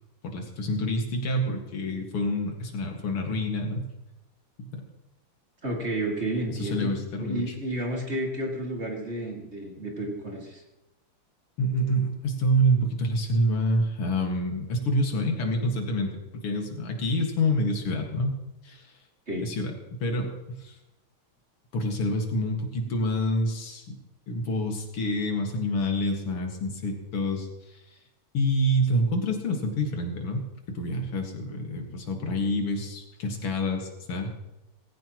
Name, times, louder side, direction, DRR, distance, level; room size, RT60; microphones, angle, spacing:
voice 1, 0.2-3.9 4.6-4.8 6.5-7.5 11.6-18.3 18.6-18.9 19.4-20.8 21.7-23.9 24.3-27.5 28.3-34.3, equal, 85° left, 2 dB, 2.9 m, -27 dB
voice 2, 5.6-7.0 7.2-10.6 19.3-19.5, right 1 dB, 30° right, 0 dB, 2.6 m, -31 dB
19.5 x 16.0 x 3.1 m, 0.96 s
omnidirectional pair, 2.4 m